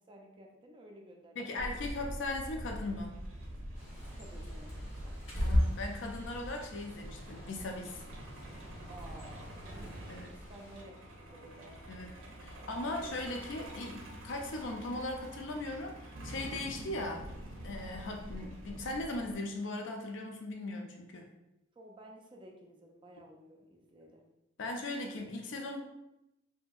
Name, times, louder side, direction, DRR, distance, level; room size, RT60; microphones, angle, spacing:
voice 1, 0.1-2.0 4.1-5.9 8.9-11.8 12.6-13.2 21.7-24.2, right 1 dB, 25° right, 1 dB, 0.3 m, -54 dB
voice 2, 1.4-3.1 5.3-8.0 10.1-10.3 11.9-12.1 12.4-17.3 17.6-21.3 24.6-25.8, left 2 dB, 65° left, 2 dB, 0.5 m, -38 dB
Truck, 1.6-19.3, right 1 dB, 90° right, 0.6 m, -46 dB
Bird, 3.7-10.8, equal, 90° left, 1.1 m, -37 dB
2.7 x 2.6 x 2.3 m, 0.88 s
head